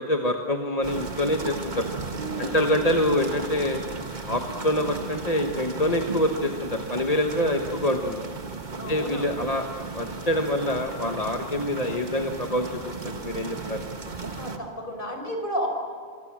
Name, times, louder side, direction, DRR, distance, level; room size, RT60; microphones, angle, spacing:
voice 1, 0.0-1.9 2.4-3.8 4.2-8.2 8.9-9.6 9.9-13.9, left 1 dB, 40° left, 3 dB, 1.4 m, -26 dB
sound 1, 0.8-14.6, right 3 dB, 45° right, 1.7 m, -35 dB
voice 2, 2.1-2.6 8.8-9.3 14.3-15.7, equal, 55° left, 3 dB, 5.4 m, -32 dB
27.0 x 24.5 x 7.5 m, 2.1 s
omnidirectional pair, 1.1 m